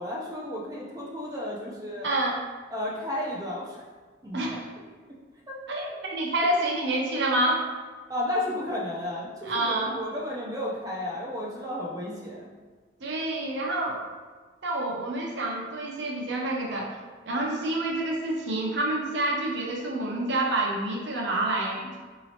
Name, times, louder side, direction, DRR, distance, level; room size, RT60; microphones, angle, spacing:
voice 1, 0.0-2.1 2.7-3.8 4.2-4.6 5.5-5.9 8.1-12.5, left 1 dB, 20° right, -4 dB, 0.5 m, -33 dB
voice 2, 2.0-2.4 4.3-4.7 5.7-7.6 9.4-10.0 13.0-14.0 14.6-17.0 17.3-22.0, right 1 dB, 65° right, -2 dB, 0.6 m, -28 dB
4.1 x 2.9 x 2.8 m, 1.4 s
head